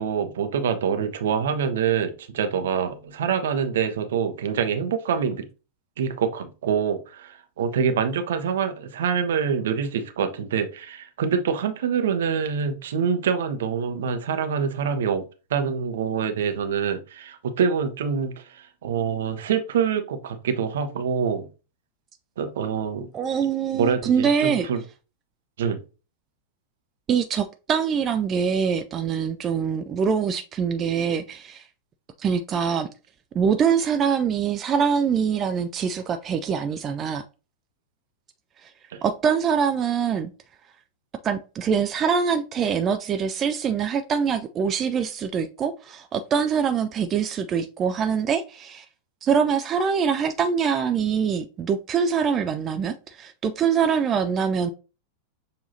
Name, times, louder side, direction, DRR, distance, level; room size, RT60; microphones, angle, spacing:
voice 1, 0.0-5.4 6.0-15.2 15.5-21.5 22.4-23.1 23.7-24.8 25.6-25.8 38.9-39.0, right 7 dB, 60° right, 0.7 m, -25 dB
voice 2, 23.1-24.7 27.1-31.6 32.2-32.9 33.3-37.2 38.6-38.7 39.0-40.3 41.2-48.9 49.2-54.7, right 6 dB, 25° right, 0.4 m, -24 dB
6.6 x 2.7 x 2.7 m
figure-of-eight pair, 90°, 0 cm